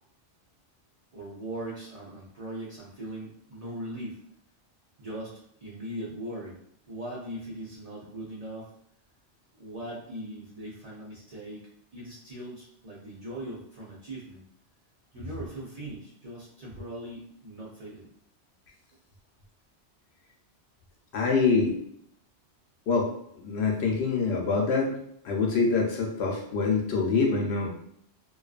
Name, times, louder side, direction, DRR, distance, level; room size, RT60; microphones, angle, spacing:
voice 1, 1.1-4.2 5.0-6.6 6.9-8.7 9.5-11.6 11.9-14.4 15.1-18.1, right 1 dB, 45° right, -7 dB, 0.5 m, -40 dB
voice 2, 21.1-21.7 22.9-23.1 23.3-24.9 25.2-27.7, left 4 dB, 70° left, -1 dB, 0.8 m, -25 dB
2.5 x 2.3 x 2.4 m, 0.68 s
omnidirectional pair, 1.2 m